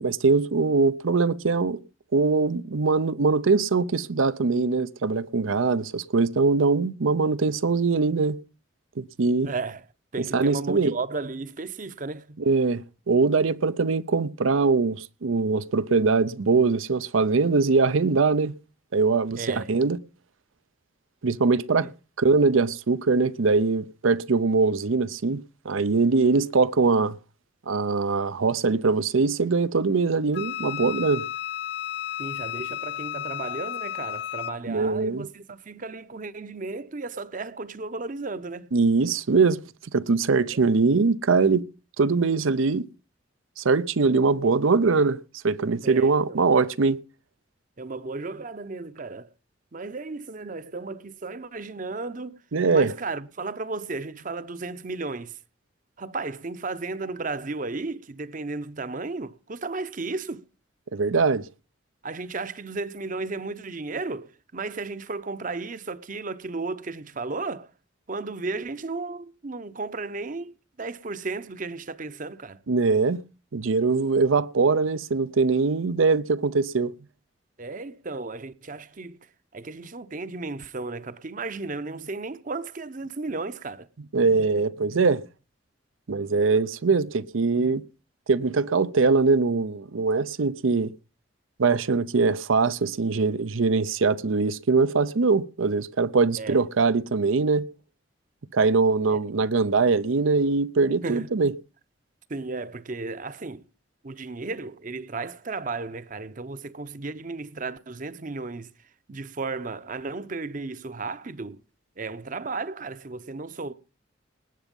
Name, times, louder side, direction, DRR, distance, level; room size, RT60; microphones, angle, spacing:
voice 1, 0.0-1.8 2.1-8.4 9.0-9.5 10.2-11.0 12.4-18.6 18.9-20.0 21.2-21.9 22.2-27.2 27.7-31.2 34.7-35.3 38.7-39.6 39.9-41.7 42.0-42.8 43.6-45.2 45.4-47.0 52.5-52.9 60.9-61.5 72.7-73.2 73.5-76.9 84.1-85.2 86.1-87.8 88.3-90.9 91.6-97.7 98.5-101.5, right 4 dB, 90° right, 0.6 m, -22 dB
voice 2, 9.4-9.8 10.1-12.4 19.4-19.7 21.8-21.9 32.2-38.7 40.3-40.7 45.8-46.4 47.8-49.3 49.7-52.4 52.7-55.3 56.0-60.4 62.0-67.7 68.1-70.5 70.8-72.6 77.6-79.2 79.5-83.9 96.4-96.6 99.1-99.2 101.0-101.3 102.3-103.6 104.0-108.7 109.1-111.6 112.0-113.7, right 3 dB, 40° right, 0.7 m, -34 dB
Wind instrument woodwind instrument, 30.3-34.6, left 12 dB, 60° left, 0.7 m, -33 dB
19.0 x 8.1 x 5.3 m
head